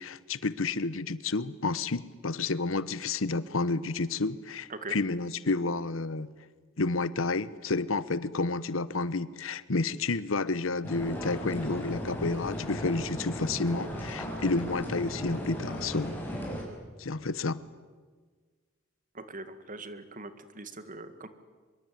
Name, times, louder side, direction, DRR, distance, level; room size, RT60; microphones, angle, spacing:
voice 1, 0.0-6.3 6.8-16.2 17.0-17.6, left 3 dB, 75° left, 17 dB, 1.0 m, -30 dB
sound 1, 10.8-16.6, equal, 10° left, 6.3 m, -36 dB
voice 2, 19.2-21.3, right 2 dB, 40° right, 11 dB, 2.0 m, -42 dB
25.0 x 23.0 x 9.3 m, 1.5 s
head